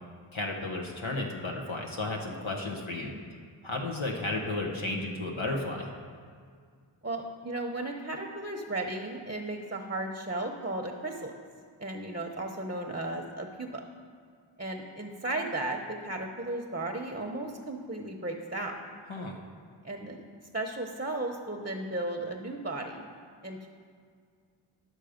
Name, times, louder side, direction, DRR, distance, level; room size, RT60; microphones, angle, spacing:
voice 1, 0.3-3.2 3.6-5.9 19.1-19.4, left 2 dB, 70° left, 0 dB, 1.1 m, -33 dB
voice 2, 7.0-11.3 11.8-13.8 14.6-18.7 19.8-20.2 20.5-23.1 23.4-23.7, right 2 dB, 20° right, 2 dB, 0.8 m, -35 dB
11.0 x 6.4 x 5.1 m, 2.1 s
wide cardioid pair, 50°, 48 cm